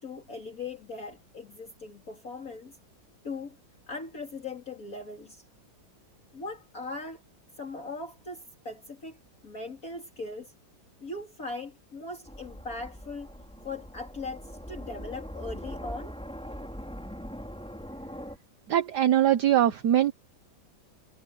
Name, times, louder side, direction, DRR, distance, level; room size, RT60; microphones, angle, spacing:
voice 1, 0.0-2.8 3.2-3.6 3.9-5.4 6.3-7.2 7.6-9.2 9.4-10.5 11.0-13.3 13.6-16.1, left 3 dB, 45° left, 3.2 m, -39 dB
sound 1, 12.3-18.4, equal, 5° left, 5.2 m, -41 dB
voice 2, 18.7-20.1, right 11 dB, 65° right, 1.4 m, -22 dB
omnidirectional pair, 2.1 m